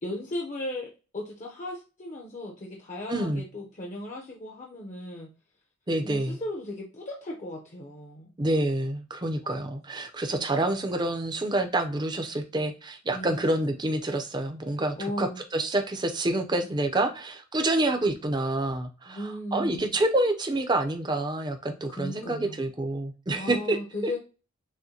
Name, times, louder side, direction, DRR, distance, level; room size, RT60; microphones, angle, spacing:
voice 1, 0.0-5.3 6.0-8.3 9.4-9.5 10.3-10.7 13.1-13.5 15.0-15.4 19.1-19.9 21.9-22.6 23.4-24.2, left 1 dB, 35° left, -1 dB, 0.7 m, -36 dB
voice 2, 3.1-3.4 5.9-6.4 8.4-23.8 24.0-24.1, right 1 dB, 20° right, 5 dB, 0.6 m, -27 dB
6.3 x 2.1 x 2.8 m, 0.32 s
head